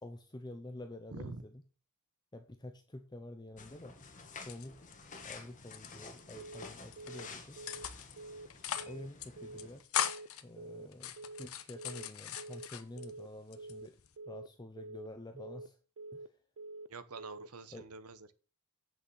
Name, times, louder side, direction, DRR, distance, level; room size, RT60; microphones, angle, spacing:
voice 1, 0.0-1.6 2.3-4.0 4.4-4.8 5.2-7.6 8.8-9.9 10.4-14.0 14.3-15.8 16.1-16.4 17.7-17.9, left 1 dB, 20° left, 6 dB, 0.8 m, -48 dB
voice 2, 1.1-1.4 16.9-18.3, right 3 dB, 85° right, 12 dB, 1.1 m, -46 dB
sound 1, 3.6-9.8, left 4 dB, 35° left, 1.6 m, -51 dB
sound 2, 4.3-5.3 5.6-6.6 6.9-7.2 7.7-8.2 8.5-8.9 9.2-9.3 9.6-10.4 10.9-13.1 13.5-14.1, left 9 dB, 70° left, 1.0 m, -39 dB
Telephone, 6.4-6.7 7.0-7.3 7.6-7.9 8.2-8.5 8.8-9.1 9.4-9.7 10.0-10.3 10.6-10.9 11.2-11.5 11.8-12.1 12.4-12.7 13.0-13.3 13.6-13.9 14.2-14.5 14.8-15.1 15.4-15.7 16.0-16.3 16.6-16.9 17.2-17.5, right 2 dB, 65° right, 0.5 m, -47 dB
8.5 x 6.3 x 6.4 m, 0.36 s
head